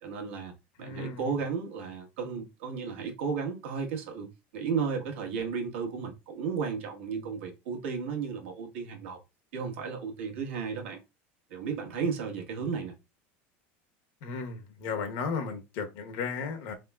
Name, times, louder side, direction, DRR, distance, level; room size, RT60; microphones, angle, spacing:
voice 1, 0.0-0.5 0.8-9.2 9.5-11.0 11.5-12.9, right 6 dB, 90° right, 1.3 m, -34 dB
voice 2, 0.8-1.2 14.2-16.7, left 5 dB, 65° left, 1.0 m, -34 dB
3.5 x 3.5 x 2.3 m
supercardioid pair, 135°, 6 cm